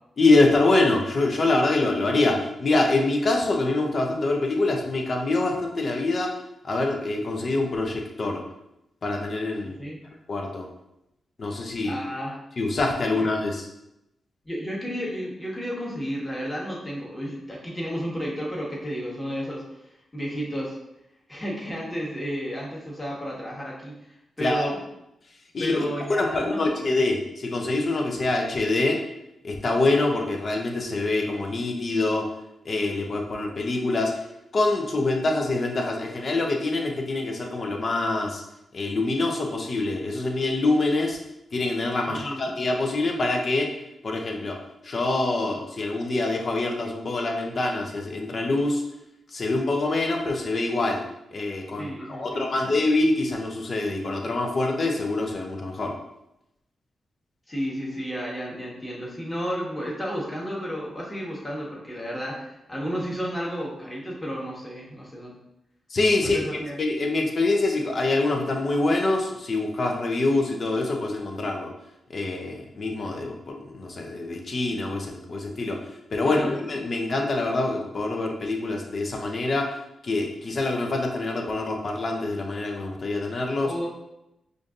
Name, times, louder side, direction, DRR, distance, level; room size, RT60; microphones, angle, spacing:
voice 1, 0.2-6.3 6.6-8.4 9.0-9.7 10.3-10.7 11.4-12.0 12.6-13.7 24.4-24.7 25.5-29.0 29.4-32.2 32.6-34.1 34.5-38.4 38.7-41.2 41.5-43.7 44.0-44.6 44.8-48.8 49.3-51.0 51.3-55.9 65.9-66.4 66.8-71.7 72.1-75.8 76.1-79.8 80.0-83.7, left 2 dB, 55° left, 1 dB, 0.7 m, -25 dB
voice 2, 9.6-10.0 11.8-12.4 13.2-13.3 14.4-19.6 20.1-20.8 21.3-24.8 25.6-26.9 42.1-42.5 51.8-52.8 57.5-65.4 66.2-66.8 76.2-76.6 83.6-83.9, equal, 20° left, -4 dB, 1.3 m, -32 dB
5.0 x 2.6 x 2.5 m, 0.87 s
supercardioid pair, 45°, 0 cm